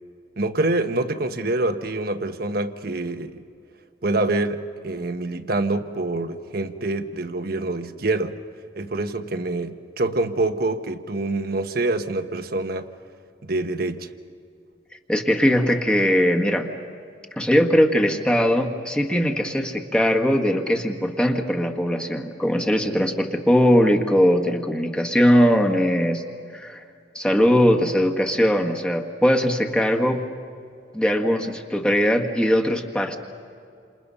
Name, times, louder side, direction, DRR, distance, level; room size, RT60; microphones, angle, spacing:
voice 1, 0.4-3.4 4.0-8.4 8.8-12.9 13.4-14.1, right 2 dB, 55° right, 7 dB, 1.3 m, -26 dB
voice 2, 15.1-16.7 17.4-26.2 26.5-26.8 27.2-30.2 30.9-33.2, equal, 5° left, 2 dB, 1.7 m, -20 dB
29.0 x 28.0 x 5.6 m, 2.4 s
head